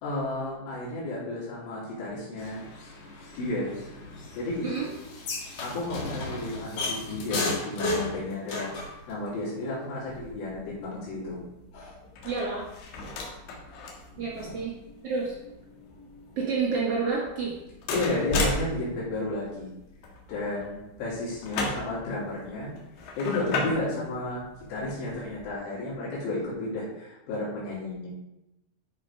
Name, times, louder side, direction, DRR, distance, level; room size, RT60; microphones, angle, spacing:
voice 1, 0.0-2.6 3.4-3.8 4.3-4.7 5.6-8.7 9.1-11.4 11.7-11.9 14.2-14.6 17.9-19.7 20.3-22.7 23.2-24.4 24.7-28.1, left 2 dB, 90° left, -8 dB, 5.6 m, -32 dB
sound 1, 2.4-9.0, left 2 dB, 45° left, 3.0 m, -34 dB
sound 2, 10.1-25.5, left 2 dB, 70° left, 3.5 m, -37 dB
voice 2, 12.2-12.7 14.2-14.7 15.0-15.4 16.4-17.5 17.9-18.2, right 4 dB, 85° right, -4 dB, 1.3 m, -29 dB
13.0 x 5.2 x 5.1 m, 0.92 s
omnidirectional pair, 5.4 m